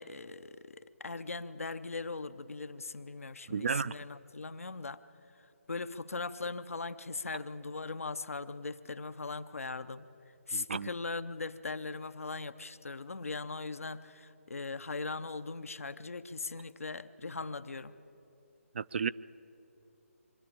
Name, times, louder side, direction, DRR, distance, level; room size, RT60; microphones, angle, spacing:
voice 1, 0.0-5.0 5.7-10.1 10.5-17.9, left 3 dB, 70° left, 13 dB, 0.8 m, -39 dB
voice 2, 3.5-3.9 10.5-10.9 18.7-19.1, right 6 dB, 50° right, 18 dB, 0.3 m, -33 dB
24.0 x 12.5 x 8.8 m, 2.9 s
figure-of-eight pair, 145°, 8 cm